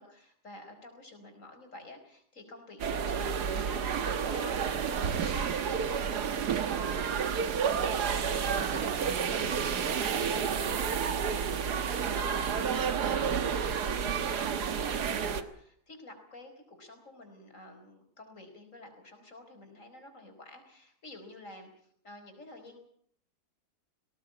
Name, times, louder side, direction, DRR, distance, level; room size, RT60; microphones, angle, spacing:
voice 1, 0.0-7.0 14.0-22.8, left 2 dB, 50° left, 5 dB, 5.0 m, -50 dB
sound 1, 2.8-15.4, right 7 dB, 90° right, 1.8 m, -30 dB
voice 2, 4.9-5.6 7.7-8.0 8.5-13.2, right 5 dB, 60° right, 8 dB, 2.5 m, -43 dB
19.5 x 18.0 x 8.6 m, 0.64 s
omnidirectional pair, 1.7 m